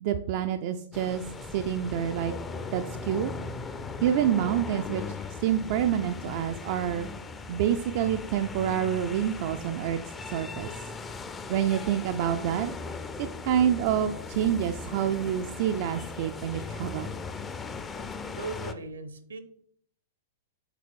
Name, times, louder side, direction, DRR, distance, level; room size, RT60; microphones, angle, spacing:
voice 1, 0.0-1.2 1.5-2.3 2.7-3.3 4.0-5.0 5.4-7.1 7.5-10.0 10.3-10.7 11.5-12.7 13.2-17.1, right 10 dB, 45° right, 7 dB, 0.4 m, -27 dB
sound 1, 0.9-18.7, left 4 dB, 15° left, 0.5 m, -38 dB
voice 2, 18.4-19.4, right 4 dB, 70° right, 10 dB, 0.8 m, -38 dB
6.8 x 4.1 x 4.6 m, 0.63 s
figure-of-eight pair, 100°, 0 cm